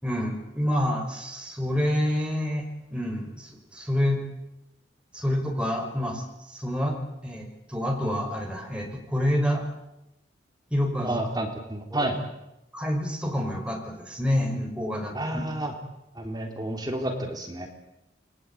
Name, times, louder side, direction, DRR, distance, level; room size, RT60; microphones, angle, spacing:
voice 1, 0.0-2.6 2.9-4.3 5.1-9.6 10.7-11.2 11.9-12.1 12.7-15.5, equal, 5° right, 1 dB, 5.6 m, -28 dB
voice 2, 11.0-12.1 15.1-15.7 16.2-17.7, right 1 dB, 20° right, 2 dB, 3.6 m, -30 dB
29.0 x 21.5 x 8.7 m, 0.90 s
head